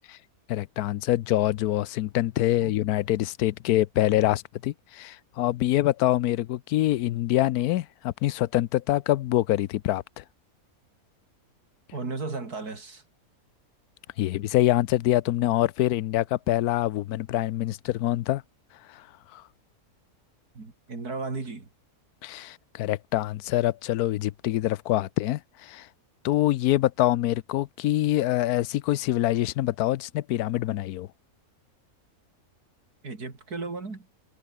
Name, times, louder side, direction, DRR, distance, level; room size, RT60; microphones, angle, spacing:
voice 1, 0.5-10.2 14.2-18.4 18.9-19.0 19.3-19.4 22.2-25.9 26.2-31.1, left 15 dB, 80° left, 1.1 m, -25 dB
voice 2, 11.9-13.0 20.5-21.7 33.0-34.1, right 3 dB, 80° right, 4.2 m, -35 dB
omnidirectional pair, 1.6 m